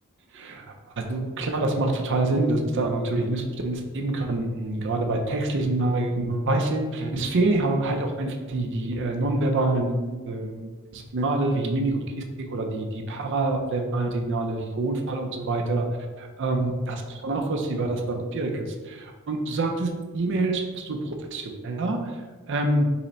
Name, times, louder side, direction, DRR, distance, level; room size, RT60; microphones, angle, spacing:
voice 1, 0.3-0.7 1.0-15.9 16.2-22.9, right 2 dB, 55° right, 3 dB, 0.5 m, -26 dB
5.5 x 2.1 x 4.0 m, 1.4 s
head